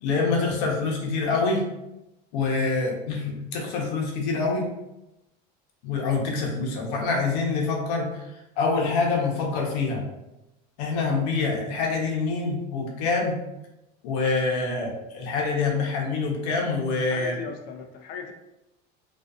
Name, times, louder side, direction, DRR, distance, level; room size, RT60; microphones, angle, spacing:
voice 1, 0.0-1.6 2.3-4.7 5.8-8.2 8.6-10.1 10.8-13.4 14.0-17.3, left 4 dB, 75° left, 0 dB, 0.7 m, -26 dB
voice 2, 17.1-18.3, left 6 dB, 45° left, 4 dB, 0.4 m, -37 dB
2.5 x 2.4 x 2.3 m, 0.91 s
cardioid pair, 155°, 21 cm